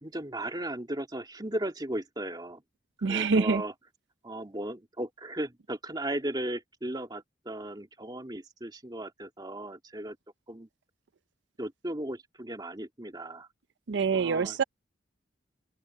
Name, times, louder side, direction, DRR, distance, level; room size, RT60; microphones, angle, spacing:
voice 1, 0.0-2.6 3.1-3.7 4.2-10.2 10.5-10.7 11.6-13.5 14.1-14.6, right 1 dB, 25° right, 2.8 m, -36 dB
voice 2, 3.0-3.6 13.9-14.6, right 5 dB, 70° right, 0.5 m, -25 dB
open air
head